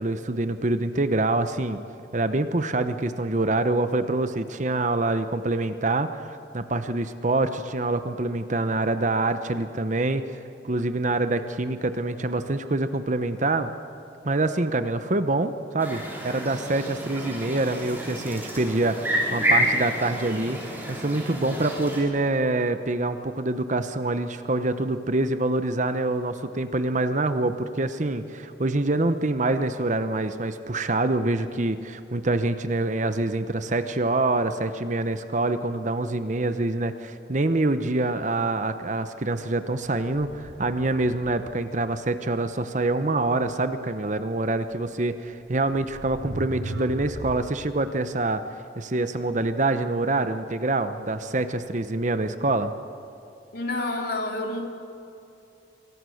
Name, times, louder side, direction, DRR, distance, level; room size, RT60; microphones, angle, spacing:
voice 1, 0.0-1.8 2.1-10.4 10.6-13.7 14.2-48.4 48.8-52.7, right 2 dB, 40° right, 10 dB, 0.9 m, -26 dB
sound 1, 15.8-22.0, equal, 10° right, 6.3 m, -29 dB
sound 2, 40.0-41.6 44.6-44.7 45.6-47.5, right 1 dB, 75° right, 2.9 m, -37 dB
voice 2, 53.5-54.7, left 2 dB, 55° left, 2 dB, 3.1 m, -29 dB
27.0 x 23.0 x 6.5 m, 2.8 s
head